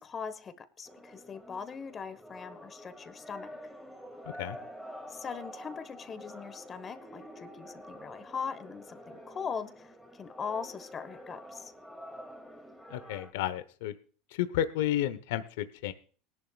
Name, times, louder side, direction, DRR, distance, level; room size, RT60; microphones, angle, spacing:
voice 1, 0.0-3.5 5.1-11.7, left 6 dB, 30° left, 11 dB, 1.3 m, -40 dB
sound 1, 0.8-13.3, equal, ahead, 2.5 m, -48 dB
voice 2, 12.9-13.9 14.4-15.9, left 12 dB, 80° left, 12 dB, 0.9 m, -31 dB
19.0 x 11.0 x 2.4 m, 0.40 s
supercardioid pair, 115°, 0 cm